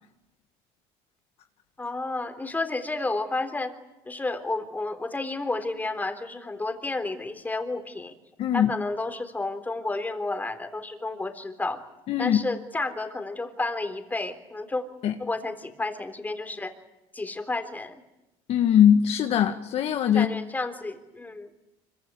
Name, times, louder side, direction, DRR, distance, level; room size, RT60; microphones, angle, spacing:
voice 1, 1.8-3.7 4.1-8.2 8.5-11.8 12.2-14.8 15.2-16.7 17.1-17.9 20.1-21.5, left 2 dB, 15° left, 7 dB, 3.6 m, -31 dB
voice 2, 8.4-8.7 12.1-12.4 15.0-15.1 18.5-20.3, left 9 dB, 55° left, 6 dB, 1.7 m, -21 dB
25.0 x 24.0 x 9.6 m, 0.95 s
supercardioid pair, 110°, 13 cm